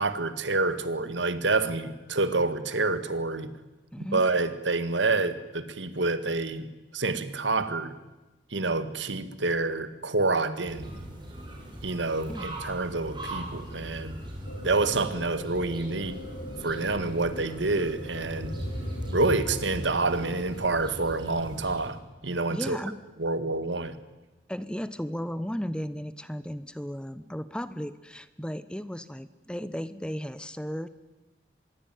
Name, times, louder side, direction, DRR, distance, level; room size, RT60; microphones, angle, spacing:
voice 1, 0.0-3.5 4.0-7.9 8.5-10.9 11.8-14.2 14.6-16.2 16.6-18.6 19.1-22.8 23.2-24.0, right 3 dB, 85° right, 12 dB, 1.9 m, -28 dB
voice 2, 3.9-4.2 12.3-12.4 22.5-22.9 24.5-30.9, equal, 5° left, 14 dB, 0.8 m, -35 dB
sound 1, 10.6-21.9, right 1 dB, 25° right, 6.2 m, -39 dB
sound 2, 14.4-21.3, equal, 70° left, 3.4 m, -42 dB
25.5 x 21.5 x 9.3 m, 1.1 s
head